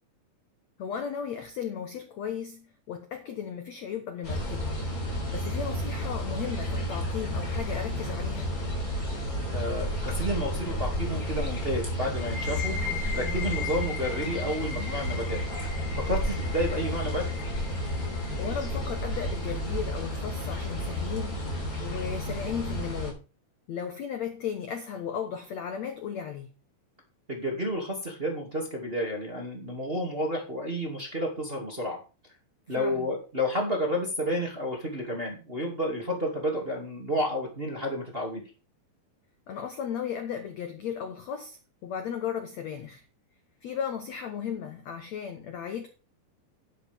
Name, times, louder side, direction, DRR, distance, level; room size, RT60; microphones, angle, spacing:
voice 1, 0.8-4.8 5.3-8.5 18.4-21.5 21.8-23.2 23.7-26.5 32.8-33.1 39.5-43.0 43.6-45.9, left 8 dB, 65° left, 1.7 m, -35 dB
sound 1, 4.2-23.1, equal, 20° left, 4.3 m, -31 dB
voice 2, 9.5-12.8 13.1-15.4 16.1-17.2 27.3-32.0 32.7-38.4, equal, 20° right, 1.9 m, -31 dB
sound 2, 12.1-19.6, left 5 dB, 45° left, 5.4 m, -39 dB
10.5 x 10.5 x 3.6 m
omnidirectional pair, 4.6 m